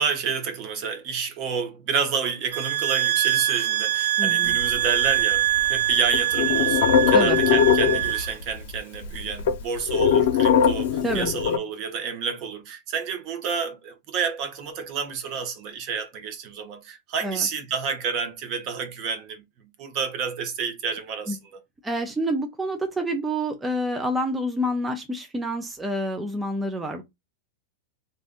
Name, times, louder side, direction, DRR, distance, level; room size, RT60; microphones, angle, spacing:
voice 1, 0.0-19.4 19.8-21.4, right 6 dB, 45° right, 0.8 m, -29 dB
sound 1, 2.5-8.4, right 13 dB, 80° right, 0.4 m, -24 dB
voice 2, 4.2-4.6 7.1-7.4 11.0-11.3 17.2-17.5 21.3-21.4 21.8-27.0, equal, 10° right, 0.6 m, -28 dB
sound 2, 4.5-5.6 5.9-8.5 8.8-8.9 9.0-11.6, left 7 dB, 70° left, 0.7 m, -21 dB
2.6 x 2.5 x 3.5 m
supercardioid pair, 140°, 0 cm